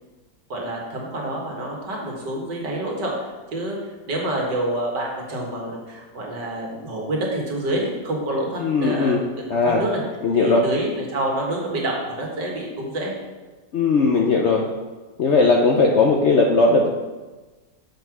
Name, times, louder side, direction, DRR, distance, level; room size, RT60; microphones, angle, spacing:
voice 1, 0.5-3.8 4.1-9.2 9.6-10.0 10.4-13.1, right 1 dB, 75° right, -2 dB, 2.4 m, -27 dB
voice 2, 8.6-9.2 9.5-9.8 10.2-10.7 13.7-14.7 15.2-16.9, left 3 dB, 60° left, 2 dB, 0.7 m, -18 dB
7.1 x 5.5 x 6.0 m, 1.2 s
omnidirectional pair, 1.9 m